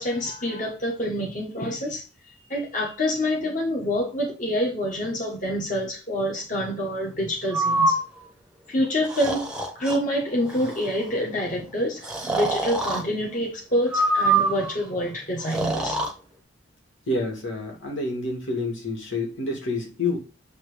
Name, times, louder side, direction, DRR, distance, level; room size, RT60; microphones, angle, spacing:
voice 1, 0.0-2.0 2.5-8.0 8.7-9.5 9.7-16.0, equal, 40° left, 1.6 m, -27 dB
Breathing, 7.5-8.0 9.0-10.0 10.5-10.9 12.0-13.0 13.9-14.7 15.4-16.1, right 2 dB, 5° right, 1.0 m, -24 dB
voice 2, 17.1-20.2, left 2 dB, 80° left, 2.5 m, -28 dB
8.4 x 3.1 x 5.1 m
head